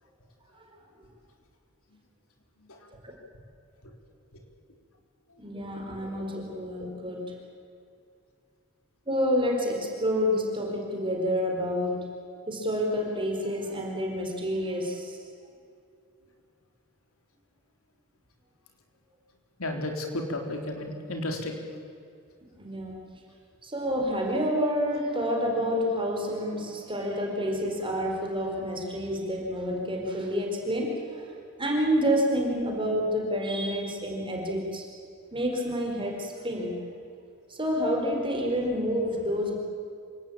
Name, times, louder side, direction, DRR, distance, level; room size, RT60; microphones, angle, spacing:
voice 1, 5.4-7.3 9.1-12.0 12.5-15.2 22.6-22.9 23.6-31.2 31.6-34.8 35.3-36.7 37.5-39.5, equal, 25° right, 0 dB, 4.6 m, -28 dB
voice 2, 19.6-21.5, left 1 dB, 85° left, 3 dB, 3.7 m, -32 dB
27.5 x 17.5 x 8.8 m, 2.4 s
head